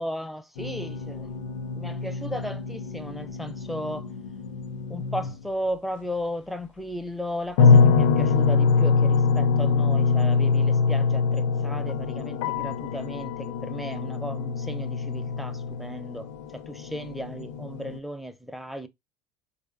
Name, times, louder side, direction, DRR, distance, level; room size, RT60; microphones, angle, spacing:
voice 1, 0.0-1.5 1.7-4.1 4.9-16.3 16.5-18.9, equal, ahead, 0.5 m, -35 dB
sound 1, 0.6-5.4 7.6-18.0, left 5 dB, 70° left, 0.4 m, -24 dB
4.3 x 2.6 x 2.4 m
hypercardioid pair, 75°, 16 cm